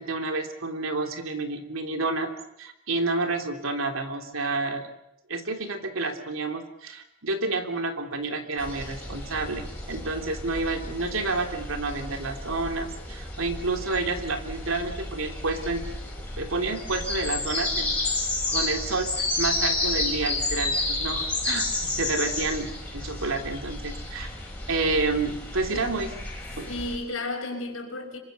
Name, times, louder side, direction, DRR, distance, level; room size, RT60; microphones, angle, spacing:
voice 1, 0.0-2.3 2.6-4.9 5.3-15.8 16.4-17.9 18.5-24.3 24.7-26.1 26.6-26.7, right 3 dB, 85° right, 3.3 m, -29 dB
sound 1, 8.6-27.0, left 2 dB, 5° left, 6.4 m, -31 dB
voice 2, 25.7-26.0 26.7-28.2, left 2 dB, 90° left, 5.7 m, -33 dB
26.5 x 24.0 x 6.8 m
head